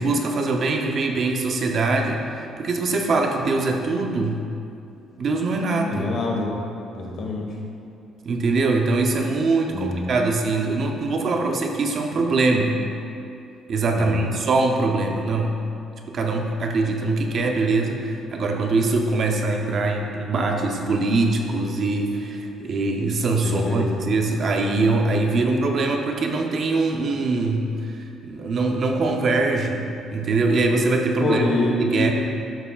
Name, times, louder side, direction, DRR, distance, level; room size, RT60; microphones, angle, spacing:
voice 1, 0.0-4.4 5.2-6.1 8.2-12.8 13.7-15.6 16.1-31.5 31.8-32.1, right 3 dB, 40° right, 2 dB, 0.6 m, -23 dB
voice 2, 5.9-6.5 6.9-7.5 9.7-10.0 13.9-14.3 23.4-23.8 31.2-32.1, left 2 dB, 50° left, -1 dB, 1.3 m, -25 dB
12.5 x 6.8 x 2.4 m, 2.5 s
cardioid pair, 170°, 0 cm